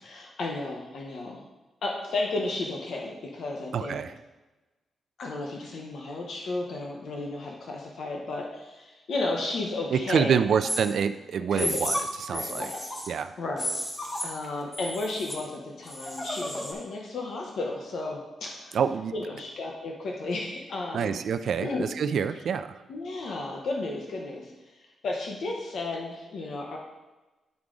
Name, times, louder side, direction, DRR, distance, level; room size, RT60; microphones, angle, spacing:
voice 1, 0.0-1.4 1.8-4.0 5.2-10.3 11.5-11.8 12.3-12.8 13.4-13.7 14.2-18.8 19.1-21.2 21.6-21.9 22.9-24.5 25.0-26.8, left 2 dB, 60° left, 0 dB, 0.8 m, -33 dB
voice 2, 3.7-4.1 9.9-12.7 13.1-13.3 18.7-19.3 20.9-22.8, right 7 dB, 60° right, 10 dB, 0.3 m, -27 dB
sound 1, 10.6-10.8 11.5-12.0 12.3-13.1 13.6-14.5 14.7-15.3 15.9-16.7, left 1 dB, 20° left, 1.1 m, -32 dB
9.4 x 4.8 x 3.8 m, 1.1 s
wide cardioid pair, 165°, 0 cm